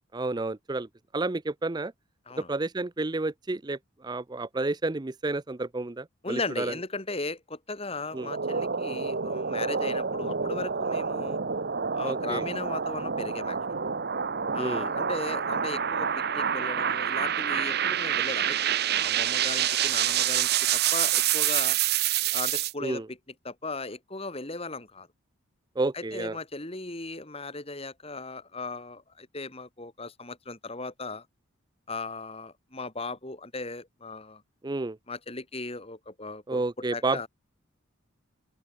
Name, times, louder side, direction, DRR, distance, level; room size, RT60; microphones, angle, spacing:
voice 1, 0.1-0.9 1.1-1.9 2.4-6.7 8.1-8.3 12.0-12.4 14.6-14.9 22.8-23.1 25.8-26.4 34.6-35.0 36.5-37.3, right 2 dB, 20° right, 0.5 m, -30 dB
voice 2, 6.2-11.4 11.9-13.8 14.5-18.6 18.9-21.8 22.3-23.0 23.4-25.1 25.9-31.2 31.9-34.4 35.1-36.6 36.9-37.3, left 3 dB, 30° left, 2.7 m, -37 dB
sound 1, 8.1-22.7, right 8 dB, 50° right, 0.9 m, -27 dB
open air
head